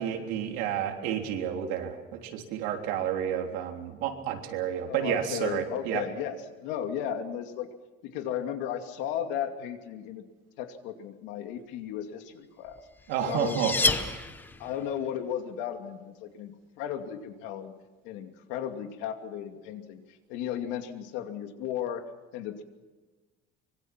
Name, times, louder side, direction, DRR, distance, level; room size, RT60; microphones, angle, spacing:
voice 1, 0.0-6.0 13.1-14.2, right 9 dB, 80° right, 3 dB, 3.4 m, -31 dB
voice 2, 4.9-7.7 8.0-10.2 10.6-12.8 13.2-13.9 14.6-17.7 18.0-22.0 22.3-22.6, left 9 dB, 80° left, 6 dB, 2.6 m, -35 dB
sound 1, 12.8-14.8, left 3 dB, 10° left, 0.9 m, -29 dB
24.5 x 23.0 x 6.0 m, 1.3 s
cardioid pair, 170°, 19 cm